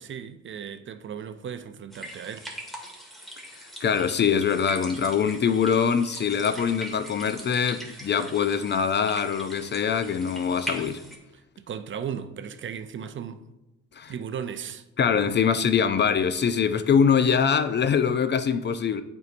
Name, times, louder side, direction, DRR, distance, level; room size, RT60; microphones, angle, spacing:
voice 1, 0.0-2.5 11.3-13.4 14.1-14.8, right 8 dB, 40° right, 0.4 m, -36 dB
sound 1, 1.9-11.2, equal, ahead, 1.4 m, -41 dB
voice 2, 3.8-11.0 14.0-14.1 15.0-19.0, left 7 dB, 35° left, 0.4 m, -23 dB
8.0 x 4.6 x 2.5 m
cardioid pair, 90°, 30 cm